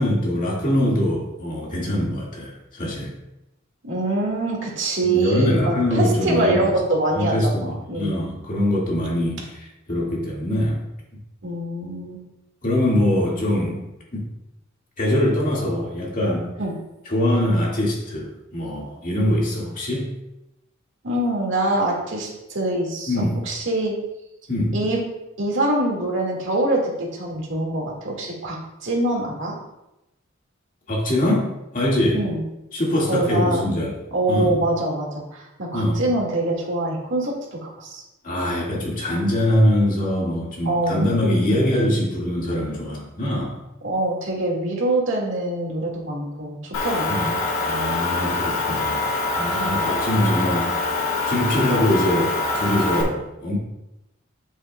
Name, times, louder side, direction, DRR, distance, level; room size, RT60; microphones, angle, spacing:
voice 1, 0.0-3.1 5.0-6.6 7.2-10.8 12.6-14.2 15.0-16.5 17.1-20.1 23.1-23.4 24.5-24.8 30.9-32.3 32.7-33.9 34.3-34.6 35.7-36.0 38.2-43.6 47.1-47.3 47.6-49.1 49.3-50.7 51.3-53.6, left 1 dB, 40° left, -4 dB, 2.1 m, -23 dB
voice 2, 3.8-8.2 11.4-12.2 16.6-16.7 21.0-23.1 23.5-23.9 24.7-25.0 25.4-29.5 32.1-32.4 33.1-33.7 34.1-37.3 37.6-38.0 40.7-41.1 43.8-47.3 49.6-49.8, right 2 dB, 65° right, -2 dB, 2.0 m, -24 dB
Motor vehicle (road) / Engine, 46.7-53.0, left 3 dB, 90° left, 1.8 m, -24 dB
8.9 x 7.6 x 2.3 m, 0.92 s
head